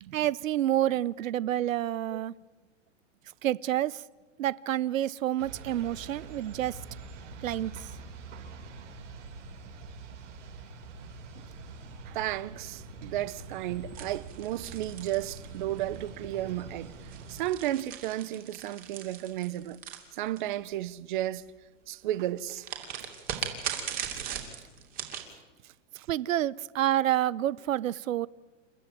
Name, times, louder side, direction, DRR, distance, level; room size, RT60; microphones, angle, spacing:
voice 1, 0.1-2.3 3.4-4.0 4.4-6.8 7.4-7.9 26.1-28.3, right 12 dB, 85° right, 0.7 m, -28 dB
sound 1, 5.4-17.4, right 3 dB, 65° right, 5.9 m, -45 dB
voice 2, 12.1-16.9 17.3-19.8 20.2-21.4 21.9-22.7 26.0-26.1, right 14 dB, 40° right, 0.8 m, -33 dB
sound 2, 13.9-16.0 16.9-20.7 22.6-25.3, right 9 dB, 20° right, 2.7 m, -38 dB
29.0 x 13.5 x 9.2 m
hypercardioid pair, 165°, 38 cm